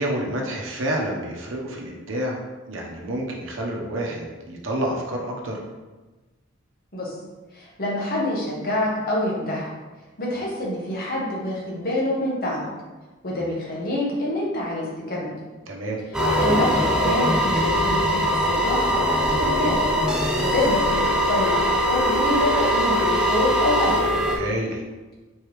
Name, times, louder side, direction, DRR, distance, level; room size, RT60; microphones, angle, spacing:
voice 1, 0.0-5.6 13.3-13.5 15.7-16.0 24.3-24.8, right 1 dB, 70° right, 0 dB, 0.8 m, -29 dB
voice 2, 7.5-9.7 10.2-12.7 13.2-15.3 16.4-19.0 19.4-19.9 20.4-24.0, left 1 dB, 45° left, -4 dB, 1.1 m, -26 dB
sound 1, 16.1-24.4, equal, 5° right, 0.4 m, -21 dB
4.5 x 3.3 x 3.1 m, 1.2 s
head